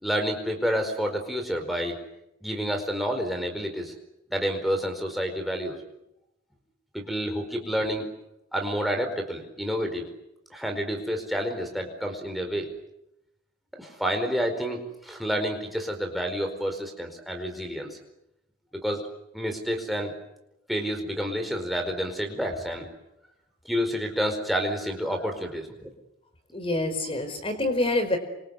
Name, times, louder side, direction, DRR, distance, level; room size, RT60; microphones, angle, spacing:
voice 1, 0.0-2.0 2.4-3.9 4.3-5.8 6.9-8.1 8.5-10.1 10.5-12.7 13.7-18.0 18.7-19.1 19.3-20.1 20.7-22.9 23.6-25.9, equal, ahead, 2 dB, 4.7 m, -29 dB
voice 2, 26.5-28.2, left 2 dB, 25° left, 9 dB, 4.8 m, -26 dB
28.5 x 25.5 x 8.2 m, 0.87 s
head